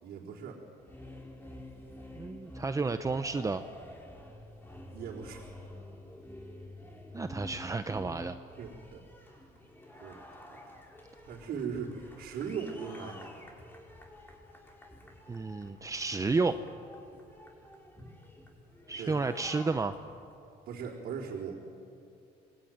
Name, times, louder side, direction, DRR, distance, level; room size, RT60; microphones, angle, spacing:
voice 1, 0.0-0.6 4.9-5.5 8.6-9.0 10.0-10.2 10.7-10.8 11.2-13.3 19.0-19.2 20.7-21.6, right 6 dB, 65° right, -6 dB, 4.1 m, -39 dB
sound 1, 0.8-20.3, left 1 dB, 10° left, 4.8 m, -49 dB
voice 2, 2.2-3.6 7.1-8.3 15.3-16.6 18.9-19.9, right 4 dB, 20° right, 9 dB, 0.8 m, -31 dB
26.0 x 21.5 x 9.4 m, 2.6 s
cardioid pair, 110°, 17 cm